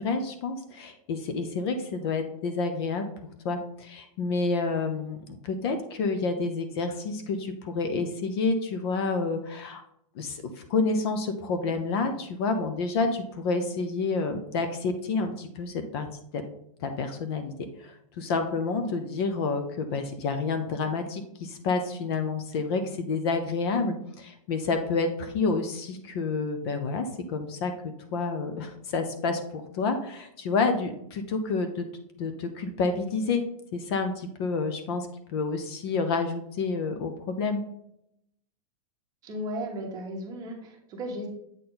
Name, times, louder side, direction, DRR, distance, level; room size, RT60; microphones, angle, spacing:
voice 1, 0.0-3.0 3.4-5.2 5.4-9.8 10.2-10.4 10.7-16.1 16.3-16.4 16.8-17.5 17.8-27.7 28.1-31.9 32.2-33.4 33.7-35.1 35.3-37.6, left 4 dB, 45° left, 7 dB, 0.8 m, -29 dB
voice 2, 39.2-41.3, equal, 20° right, 0 dB, 1.3 m, -35 dB
8.1 x 4.4 x 3.9 m, 0.76 s
supercardioid pair, 165°, 18 cm